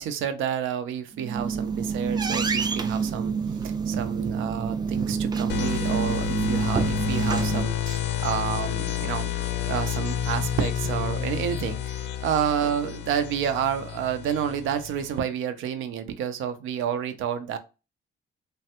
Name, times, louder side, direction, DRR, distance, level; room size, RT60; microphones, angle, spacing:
voice 1, 0.0-3.3 3.6-17.6, right 8 dB, 80° right, 0.5 m, -29 dB
sound 1, 1.1-7.6, right 5 dB, 20° right, 0.3 m, -27 dB
sound 2, 5.5-15.2, left 10 dB, 65° left, 0.4 m, -30 dB
3.2 x 2.2 x 2.8 m
cardioid pair, 90°, 20 cm